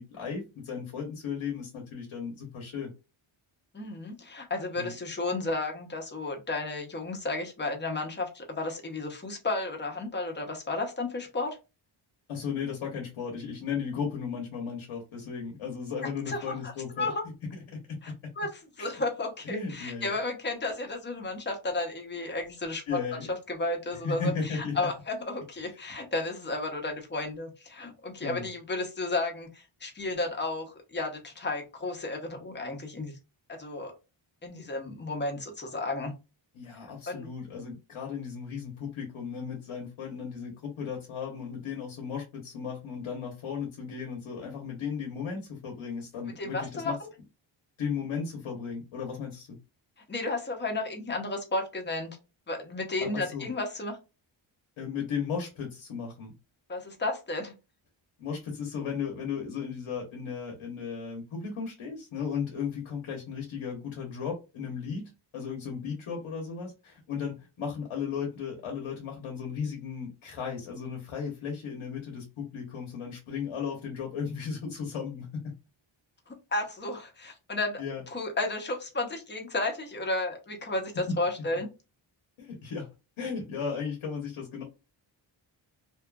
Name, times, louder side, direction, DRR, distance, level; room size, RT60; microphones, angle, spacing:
voice 1, 0.0-2.9 4.8-4.9 12.3-17.1 17.9-18.3 18.8-18.9 19.4-20.1 22.9-23.3 23.9-24.9 28.2-28.5 36.5-47.0 47.8-49.6 53.0-53.5 54.8-56.3 58.2-75.5 77.8-78.0 82.4-82.9 83.2-84.6, left 6 dB, 85° left, 1.0 m, -35 dB
voice 2, 3.7-11.6 16.3-16.7 17.0-17.2 18.0-23.0 23.5-33.2 33.5-33.9 34.4-36.1 37.1-37.3 46.4-47.1 50.1-52.1 52.5-54.0 56.7-57.5 76.5-77.8 78.1-81.7, left 2 dB, 20° left, 0.8 m, -33 dB
2.7 x 2.4 x 2.3 m
cardioid pair, 100°, 48 cm